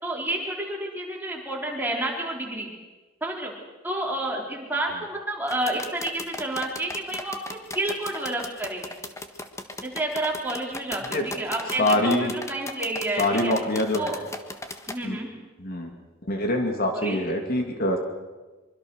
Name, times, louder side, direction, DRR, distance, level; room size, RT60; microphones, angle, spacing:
voice 1, 0.0-2.7 3.2-3.5 3.8-8.9 9.8-13.5 13.9-14.2 14.9-15.3 16.9-17.3, right 1 dB, 10° right, -1 dB, 4.2 m, -30 dB
sound 1, 5.5-15.0, left 2 dB, 15° left, 1.5 m, -36 dB
voice 2, 11.8-12.3 13.2-14.0 15.0-15.2 15.6-15.9 16.2-18.0, left 1 dB, 50° left, 4 dB, 2.5 m, -24 dB
24.5 x 24.5 x 6.5 m, 1.2 s
head